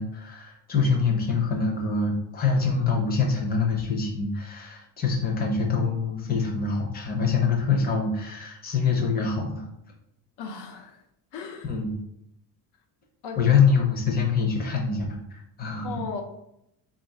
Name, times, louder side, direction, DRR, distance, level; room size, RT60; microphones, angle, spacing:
voice 1, 0.0-9.7 11.7-12.0 13.4-16.0, left 5 dB, 20° left, 0 dB, 0.7 m, -25 dB
voice 2, 10.4-11.0 11.3-11.7 13.2-13.4 15.8-16.2, left 5 dB, 70° left, 3 dB, 0.7 m, -36 dB
3.1 x 2.5 x 4.2 m, 0.79 s
cardioid pair, 150°, 43 cm